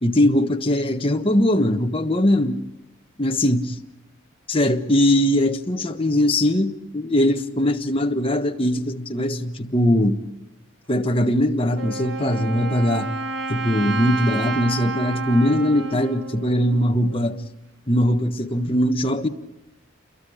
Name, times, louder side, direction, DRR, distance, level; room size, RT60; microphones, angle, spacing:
voice 1, 0.0-2.6 3.2-3.7 4.5-10.2 10.9-13.1 13.5-17.4 17.9-19.3, left 1 dB, 25° left, 1.3 m, -21 dB
Wind instrument woodwind instrument, 11.7-17.5, right 3 dB, 55° right, 1.3 m, -30 dB
28.5 x 22.5 x 5.0 m
head